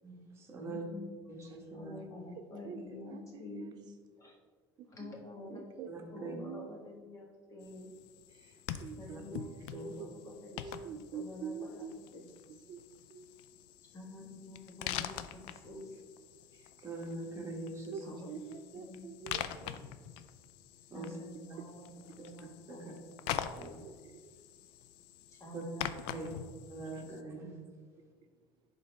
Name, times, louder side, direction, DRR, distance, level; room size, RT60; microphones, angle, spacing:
voice 1, 0.0-0.8 1.3-2.0 5.9-6.3 9.1-9.2 9.7-9.9 16.8-18.0 20.9-21.1 22.7-22.8 23.5-23.8 25.5-25.6 26.1-26.3 26.7-27.5, right 3 dB, 25° right, 0 dB, 1.3 m, -43 dB
voice 2, 0.6-1.3 1.7-3.8 4.2-4.3 4.8-7.9 9.0-12.3 13.9-16.0 18.0-18.3 18.7-19.3 19.7-19.8 20.9-23.0 23.5-23.8 25.3-26.5 27.9-28.0, left 1 dB, 30° left, -1 dB, 1.6 m, -48 dB
voice 3, 2.6-3.7 4.8-5.1 5.5-5.9 6.2-6.7 8.3-9.7 10.0-10.1 10.6-11.9 12.7-12.8 13.1-13.3 16.5-16.7 17.9-19.7 23.6-24.0, right 6 dB, 45° right, 7 dB, 0.4 m, -45 dB
sound 1, 7.6-27.2, left 10 dB, 75° left, 0.4 m, -45 dB
11.0 x 4.0 x 3.4 m, 1.5 s
cardioid pair, 135°, 10 cm